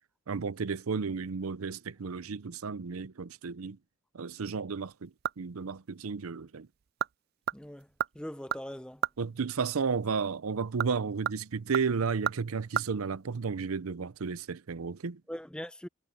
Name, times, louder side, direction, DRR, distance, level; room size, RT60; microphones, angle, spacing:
voice 1, 0.3-3.8 4.1-6.7 9.2-15.2, right 5 dB, 90° right, 0.6 m, -33 dB
sound 1, 4.7-5.7 6.0-6.1 6.7-7.1 7.4-9.2 10.5-12.9 13.1-13.2, right 9 dB, 45° right, 0.4 m, -34 dB
voice 2, 7.5-7.9 8.1-9.0 15.3-15.9, equal, 5° left, 0.6 m, -41 dB
head